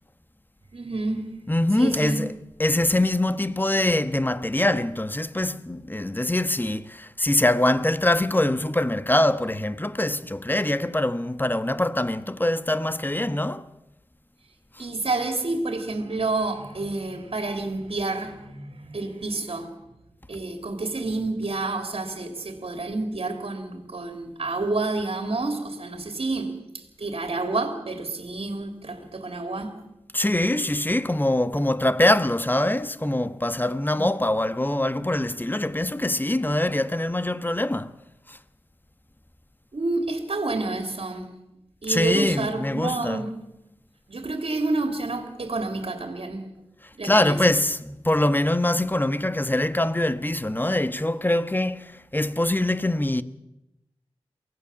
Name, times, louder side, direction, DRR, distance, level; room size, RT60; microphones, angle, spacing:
voice 1, 0.7-1.5 1.8-2.2 14.8-19.8 20.3-29.8 33.9-34.1 39.7-41.3 41.8-43.3 44.1-46.5 47.0-47.4, right 3 dB, 60° right, 3.1 m, -29 dB
voice 2, 1.5-2.3 2.6-13.7 30.1-37.9 38.3-38.4 41.9-43.3 47.0-53.2, left 1 dB, 20° left, 1.3 m, -23 dB
23.5 x 17.5 x 7.2 m
cardioid pair, 45°, 11 cm